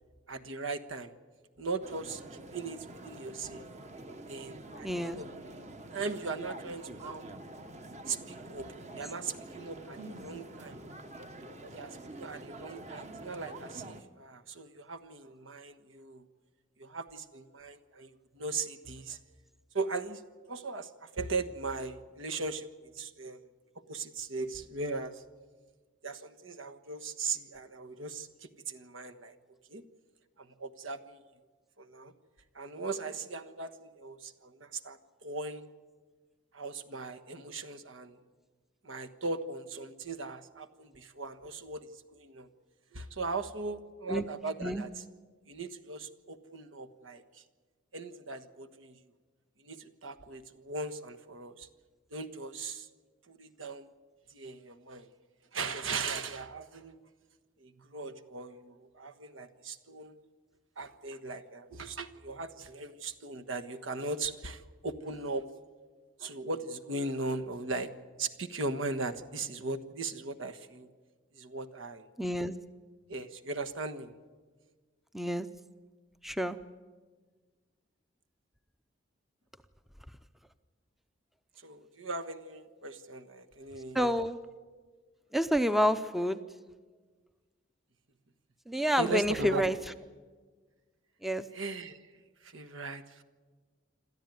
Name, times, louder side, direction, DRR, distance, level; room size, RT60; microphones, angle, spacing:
voice 1, 0.3-1.1 1.6-3.6 4.3-5.3 5.9-7.3 8.1-10.8 11.7-16.3 16.8-19.2 19.7-20.2 20.5-22.7 22.9-23.4 23.9-25.2 26.0-29.3 29.7-29.8 30.4-31.2 31.8-32.1 32.5-35.7 36.5-38.2 38.8-42.5 42.9-44.9 45.5-47.4 47.9-49.0 49.6-51.7 52.1-52.9 53.3-53.9 54.3-55.1 55.5-57.0 57.6-60.2 60.8-65.5 66.2-67.9 68.2-70.9 71.3-72.1 73.1-74.1 81.6-84.1 89.0-89.6 91.5-92.0 92.4-93.2, right 3 dB, 80° right, 7 dB, 1.4 m, -38 dB
sound 1, 1.8-14.0, right 2 dB, 35° right, 1.1 m, -46 dB
voice 2, 4.8-5.2 44.1-44.2 44.6-44.8 72.2-72.5 75.1-75.5 76.2-76.6 83.9-84.4 85.3-86.4 88.7-89.8 91.2-91.4, equal, ahead, 11 dB, 0.6 m, -28 dB
27.5 x 13.5 x 9.3 m, 1.4 s
head